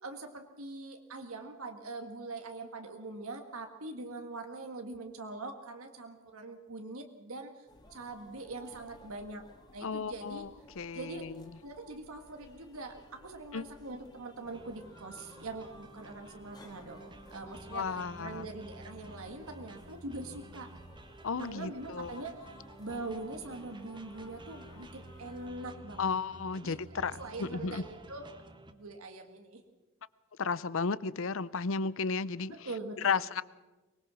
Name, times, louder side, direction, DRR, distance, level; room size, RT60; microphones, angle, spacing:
voice 1, 0.0-9.4 9.7-10.4 10.9-11.2 11.6-20.7 21.4-22.4 22.8-26.1 26.6-28.3 28.7-29.6 32.5-33.3, right 2 dB, 90° right, 5 dB, 1.8 m, -43 dB
sound 1, 7.7-25.5, left 1 dB, 20° left, 2.3 m, -57 dB
voice 2, 9.8-10.5 10.8-11.3 13.5-13.6 17.7-18.5 21.2-22.2 26.0-27.8 30.4-32.5 33.0-33.4, left 5 dB, 65° left, 19 dB, 0.6 m, -33 dB
sound 2, 14.4-28.7, right 1 dB, 20° right, 1.4 m, -51 dB
23.5 x 20.0 x 6.3 m, 1.1 s
head